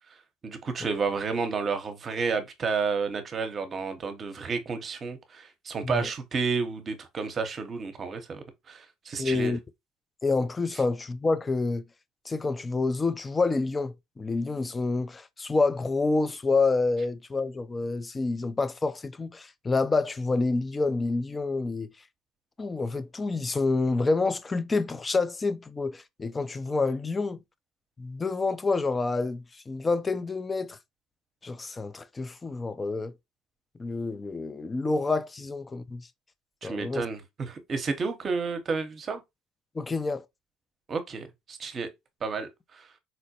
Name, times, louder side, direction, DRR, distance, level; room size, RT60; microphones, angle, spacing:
voice 1, 0.4-9.5 36.6-39.2 40.9-41.9 42.2-42.9, right 4 dB, 40° right, 0.7 m, -31 dB
voice 2, 9.2-9.6 10.2-11.8 12.3-21.9 22.6-27.4 28.0-30.8 31.4-33.1 33.8-36.1 36.6-37.0 39.7-40.2, left 3 dB, 25° left, 0.4 m, -28 dB
4.2 x 2.1 x 2.8 m
hypercardioid pair, 75°, 0 cm